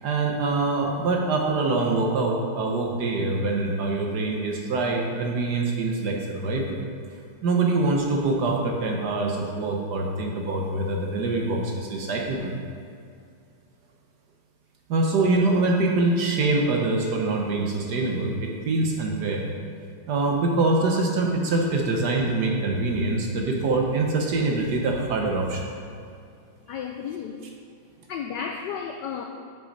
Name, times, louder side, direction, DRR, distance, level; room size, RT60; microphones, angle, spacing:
voice 1, 0.0-6.8 7.4-12.5 14.9-19.5 20.1-25.7, right 3 dB, 60° right, 1 dB, 1.2 m, -24 dB
voice 2, 26.7-27.5 28.1-29.2, left 7 dB, 90° left, 4 dB, 0.9 m, -33 dB
9.3 x 6.0 x 5.2 m, 2.3 s
omnidirectional pair, 2.4 m